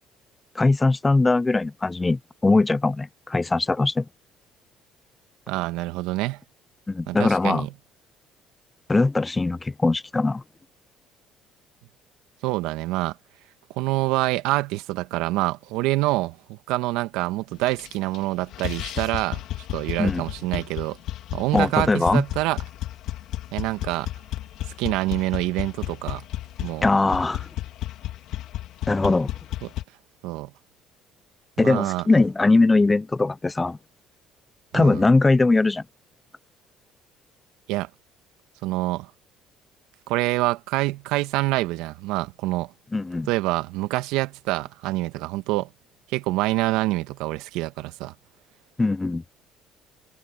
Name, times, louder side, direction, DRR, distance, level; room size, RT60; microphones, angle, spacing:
voice 1, 0.5-4.1 6.9-7.7 8.9-10.4 20.0-20.2 20.5-20.6 21.5-22.2 26.8-27.5 28.9-29.3 31.6-33.8 34.7-35.8 42.9-43.3 48.8-49.2, left 3 dB, 20° left, 0.9 m, -21 dB
voice 2, 5.5-6.4 7.1-7.7 12.4-13.2 13.7-19.4 19.7-21.0 21.3-22.6 23.5-24.1 24.8-26.2 26.6-26.8 29.6-29.7 30.2-30.5 31.6-32.1 34.7-35.0 37.7-37.9 38.6-39.1 40.1-42.7 43.3-45.7 46.1-48.1, right 19 dB, 75° right, 1.7 m, -26 dB
sound 1, 17.7-18.2 18.5-29.8, left 14 dB, 70° left, 3.0 m, -33 dB
hypercardioid pair, 65°, 0 cm